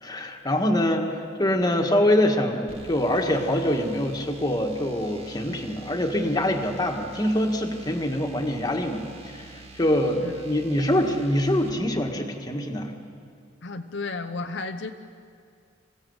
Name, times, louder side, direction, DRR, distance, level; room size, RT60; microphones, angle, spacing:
voice 1, 0.0-9.0 9.3-12.9, left 1 dB, 20° left, 3 dB, 1.8 m, -24 dB
sound 1, 2.7-11.8, right 3 dB, 30° right, 1.8 m, -47 dB
voice 2, 13.6-14.9, left 3 dB, 70° left, 4 dB, 0.9 m, -33 dB
26.5 x 16.0 x 8.0 m, 2.4 s
head